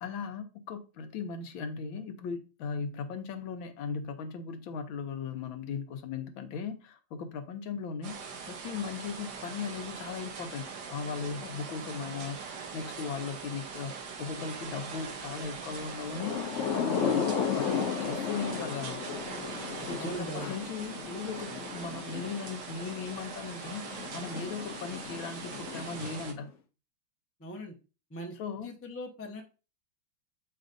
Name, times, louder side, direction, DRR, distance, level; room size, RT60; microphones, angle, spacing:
voice 1, 0.0-8.2 8.5-16.4 16.7-19.0 19.8-23.8 24.1-26.5 28.4-28.7, left 5 dB, 80° left, 1.6 m, -38 dB
sound 1, 8.0-26.3, right 5 dB, 60° right, 1.5 m, -42 dB
Thunder / Rain, 15.9-26.4, left 7 dB, 60° left, 0.8 m, -35 dB
voice 2, 20.0-20.5 27.4-27.7 28.1-29.4, equal, 15° left, 0.5 m, -40 dB
7.7 x 5.0 x 2.6 m
omnidirectional pair, 2.2 m